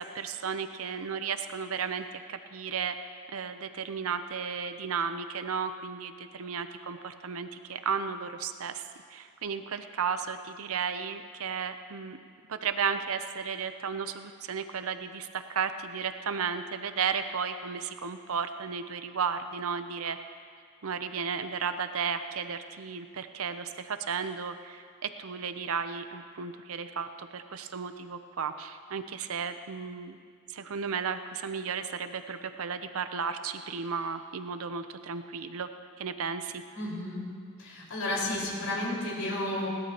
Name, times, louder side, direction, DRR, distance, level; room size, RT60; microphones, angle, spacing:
voice 1, 0.0-3.0 3.3-8.8 9.1-12.2 12.5-20.2 20.8-30.2 30.5-35.7 36.0-36.6, right 6 dB, 75° right, 9 dB, 0.6 m, -34 dB
voice 2, 36.7-37.3 37.6-39.7, left 1 dB, 70° left, -5 dB, 5.0 m, -32 dB
20.5 x 17.0 x 2.9 m, 2.1 s
head